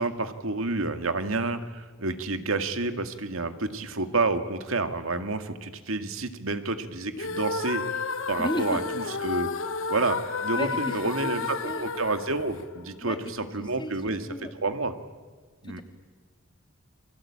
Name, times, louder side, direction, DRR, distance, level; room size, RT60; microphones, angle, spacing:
voice 1, 0.0-9.5 9.9-14.3 14.6-14.9 15.6-15.8, right 3 dB, 75° right, 9 dB, 2.0 m, -29 dB
sound 1, 7.1-13.3, left 4 dB, 70° left, 1.2 m, -32 dB
voice 2, 8.4-8.8 10.6-10.7 11.2-11.3 11.6-11.8 13.0-13.2 13.8-13.9 14.3-14.5, left 1 dB, 20° left, 5 dB, 2.9 m, -31 dB
29.0 x 23.5 x 8.7 m, 1.4 s
head